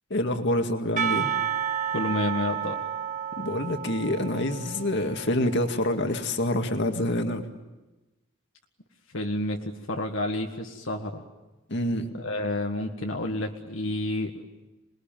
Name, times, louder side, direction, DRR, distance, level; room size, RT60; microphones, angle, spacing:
voice 1, 0.1-1.3 3.4-7.4 11.7-12.1, left 1 dB, 60° left, 5 dB, 2.1 m, -26 dB
Percussion / Church bell, 1.0-5.7, right 8 dB, 40° right, 1.1 m, -31 dB
voice 2, 1.9-2.8 9.1-11.2 12.2-14.4, left 1 dB, 75° left, 2 dB, 1.7 m, -30 dB
27.5 x 20.5 x 9.1 m, 1.1 s
head